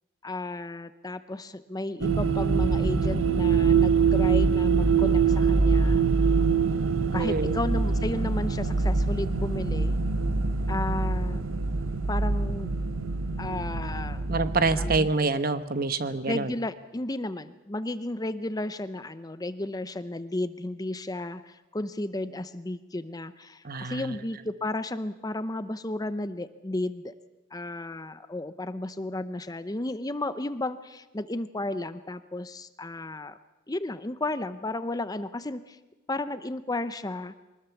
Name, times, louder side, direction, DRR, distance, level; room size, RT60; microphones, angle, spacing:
voice 1, 0.2-6.0 7.1-10.0 10.7-11.4 12.1-12.7 13.4-14.3 14.8-15.1 16.2-27.1 27.5-33.4 33.7-35.8 36.1-37.3, left 2 dB, 20° left, 12 dB, 0.6 m, -33 dB
sound 1, 2.0-15.0, right 4 dB, 75° right, 0.9 m, -24 dB
voice 2, 7.1-7.5 14.3-16.5 23.6-24.2, right 3 dB, 45° right, 11 dB, 1.1 m, -26 dB
23.0 x 20.0 x 7.1 m, 1.1 s
head